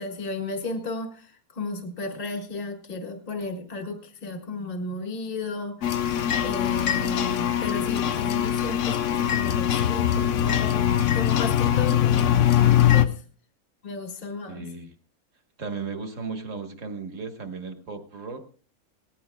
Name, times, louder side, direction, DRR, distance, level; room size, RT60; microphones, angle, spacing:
voice 1, 0.0-13.2 13.8-14.7, left 3 dB, 40° left, 4 dB, 1.8 m, -34 dB
sound 1, 5.8-13.1, left 10 dB, 60° left, 1.0 m, -22 dB
voice 2, 14.5-14.9 15.6-18.4, right 4 dB, 60° right, 6 dB, 1.8 m, -35 dB
19.0 x 15.5 x 2.2 m, 0.41 s
omnidirectional pair, 1.6 m